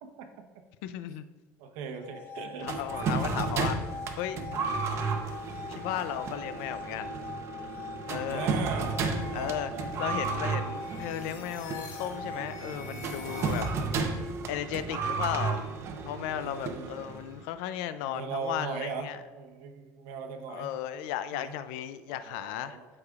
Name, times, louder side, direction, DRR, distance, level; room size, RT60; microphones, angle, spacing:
voice 1, 0.8-1.2 2.6-4.4 5.7-7.1 8.1-8.5 9.3-9.7 10.0-13.6 14.5-15.7 16.0-19.2 20.5-22.8, left 11 dB, 90° left, 12 dB, 0.4 m, -35 dB
voice 2, 1.6-3.2 3.4-4.0 8.2-9.9 13.5-13.8 14.2-14.3 16.4-17.3 18.0-20.7 21.3-21.5 22.1-22.9, right 5 dB, 85° right, 5 dB, 0.9 m, -40 dB
sound 1, 1.9-12.9, left 4 dB, 35° left, 0.5 m, -42 dB
sound 2, 2.7-17.4, right 4 dB, 45° right, 0.8 m, -33 dB
sound 3, 10.8-14.1, left 5 dB, 65° left, 1.0 m, -47 dB
13.0 x 4.8 x 2.4 m, 1.4 s
cardioid pair, 135°, 6 cm